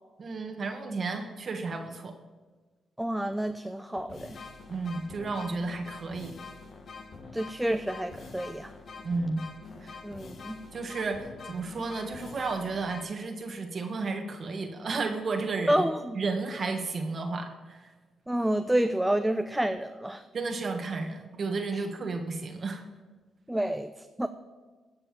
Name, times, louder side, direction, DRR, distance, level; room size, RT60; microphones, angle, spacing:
voice 1, 0.2-2.1 4.7-6.3 9.0-9.4 9.8-10.0 10.7-15.8 16.1-17.8 20.3-22.8, right 3 dB, 50° right, 4 dB, 1.3 m, -32 dB
voice 2, 3.0-4.4 7.3-8.7 10.0-10.6 15.7-16.2 18.3-20.2 21.7-21.8 23.5-24.3, right 1 dB, 5° right, 9 dB, 0.5 m, -29 dB
sound 1, 3.3-3.4 4.0-13.0, left 4 dB, 55° left, 1.6 m, -45 dB
15.5 x 5.4 x 7.4 m, 1.4 s
cardioid pair, 70°, 0 cm